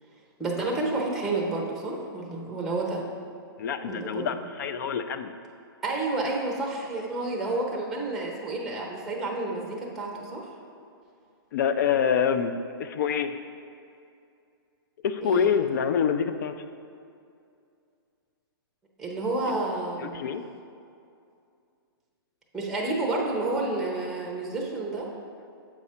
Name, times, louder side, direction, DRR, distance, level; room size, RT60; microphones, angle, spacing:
voice 1, 0.4-3.1 3.8-4.3 5.8-10.5 15.2-15.5 19.0-20.2 22.5-25.1, right 2 dB, ahead, -1 dB, 0.7 m, -30 dB
voice 2, 3.6-5.3 11.5-13.4 15.0-16.5 20.0-20.5, left 7 dB, 50° left, 10 dB, 0.4 m, -26 dB
7.1 x 4.8 x 4.2 m, 2.4 s
hypercardioid pair, 150°, 13 cm